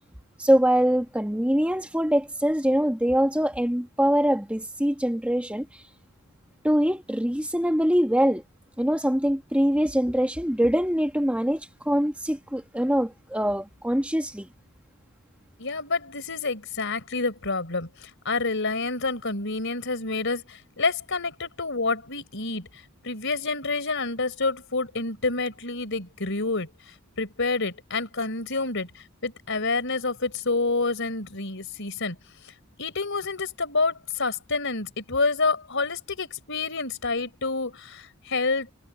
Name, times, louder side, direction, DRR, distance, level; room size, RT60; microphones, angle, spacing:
voice 1, 0.4-5.8 6.6-8.4 8.8-14.5, equal, 5° right, 1.5 m, -23 dB
voice 2, 15.6-22.7 23.0-26.7 27.2-32.2 32.8-38.7, left 3 dB, 55° left, 4.4 m, -28 dB
head